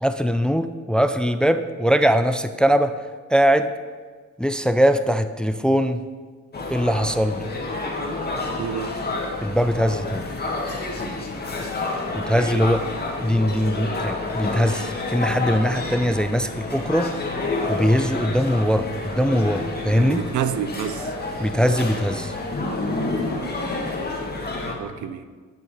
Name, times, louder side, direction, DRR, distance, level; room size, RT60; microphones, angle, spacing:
voice 1, 0.0-2.9 3.3-3.7 4.4-6.0 6.7-7.4 9.4-10.3 12.1-12.8 13.2-17.1 17.7-20.2 21.4-22.3, equal, 5° left, 10 dB, 0.4 m, -21 dB
sound 1, 6.5-24.7, left 2 dB, 35° left, 1.9 m, -29 dB
voice 2, 8.6-9.0 20.0-21.1 24.7-25.2, right 8 dB, 75° right, 10 dB, 0.7 m, -28 dB
10.5 x 6.9 x 5.0 m, 1.5 s
cardioid pair, 90°, 30 cm